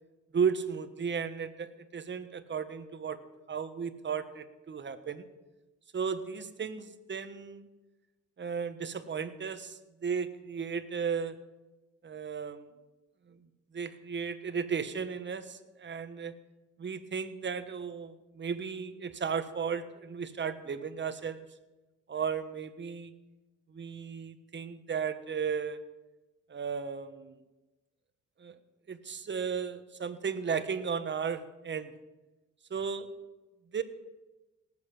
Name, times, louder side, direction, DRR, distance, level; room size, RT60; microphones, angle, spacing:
voice 1, 0.3-3.2 3.5-5.3 5.9-7.7 8.4-11.4 12.0-12.6 13.3-13.4 13.7-16.3 16.8-21.4 22.1-23.1 23.7-25.8 26.5-27.4 28.4-28.6 28.9-31.9 32.7-33.1 33.7-33.8, right 6 dB, 40° right, 11 dB, 1.3 m, -35 dB
18.0 x 8.0 x 7.1 m, 1.1 s
cardioid pair, 90°, 30 cm